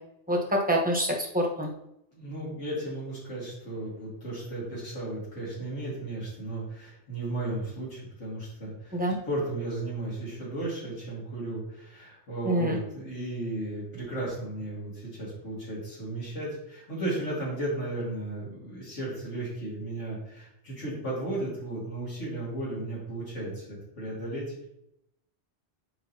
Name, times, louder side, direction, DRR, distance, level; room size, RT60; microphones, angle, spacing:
voice 1, 0.3-1.7 8.9-9.2 12.4-12.8, equal, 10° right, -1 dB, 1.1 m, -26 dB
voice 2, 2.1-9.0 9.3-24.7, right 1 dB, 85° left, -6 dB, 2.7 m, -35 dB
7.5 x 5.1 x 2.9 m, 0.81 s
omnidirectional pair, 1.2 m